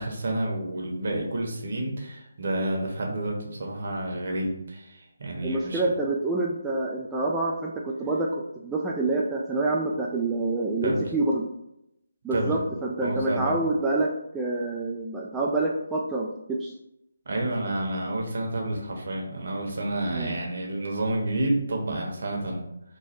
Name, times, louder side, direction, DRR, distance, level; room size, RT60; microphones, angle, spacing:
voice 1, 0.0-5.8 10.8-11.1 12.3-12.6 13.0-13.5 17.3-22.6, right 1 dB, 60° right, 0 dB, 0.9 m, -29 dB
voice 2, 5.4-8.3 8.6-11.5 12.2-16.7 20.1-20.4, right 2 dB, 10° right, -3 dB, 0.3 m, -27 dB
3.1 x 2.2 x 4.2 m, 0.83 s
figure-of-eight pair, 150°, 0 cm